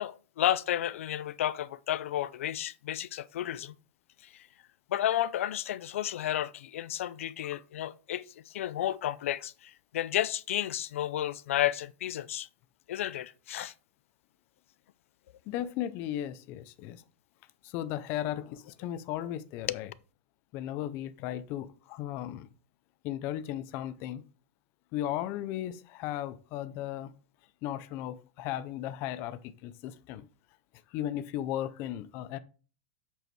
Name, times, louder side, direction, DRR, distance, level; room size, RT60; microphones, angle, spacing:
voice 1, 0.0-3.7 4.2-4.5 4.9-12.5 12.9-13.7 19.7-19.8, left 12 dB, 90° left, 0.5 m, -32 dB
voice 2, 15.5-17.0 17.6-19.9 20.5-22.5 23.0-24.2 24.9-27.1 27.6-30.3 30.9-32.4, left 12 dB, 35° left, 0.5 m, -36 dB
7.9 x 4.6 x 4.7 m
supercardioid pair, 170°, 7 cm